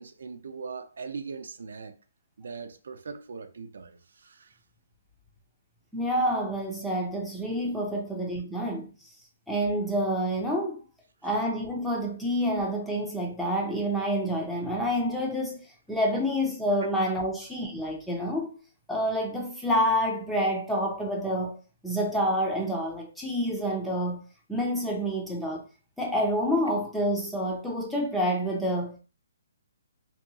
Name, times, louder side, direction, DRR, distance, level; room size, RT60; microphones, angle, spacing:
voice 1, 0.0-2.0 2.4-4.6 7.9-8.0, right 5 dB, 70° right, 0.4 m, -40 dB
voice 2, 5.9-8.9 9.5-10.8 11.2-15.6 15.9-18.6 18.9-21.6 21.8-25.7 26.0-29.0, equal, ahead, 0.4 m, -28 dB
2.7 x 2.6 x 2.6 m
hypercardioid pair, 175°, 0 cm